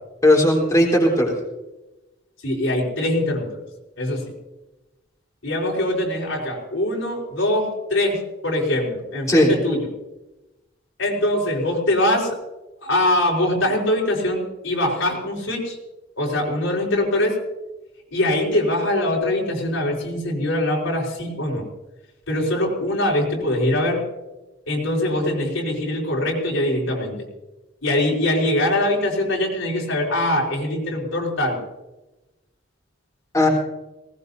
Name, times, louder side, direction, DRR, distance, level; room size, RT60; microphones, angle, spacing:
voice 1, 0.2-1.3 9.3-9.5 33.3-33.5, left 1 dB, 15° left, -2 dB, 3.9 m, -16 dB
voice 2, 2.4-3.6 4.0-4.2 5.4-9.9 11.0-12.4 12.8-15.8 16.2-17.4 18.1-21.6 22.3-24.0 24.7-27.2 27.8-31.6, left 1 dB, 80° left, -2 dB, 4.5 m, -22 dB
19.5 x 19.0 x 2.8 m, 1.0 s
head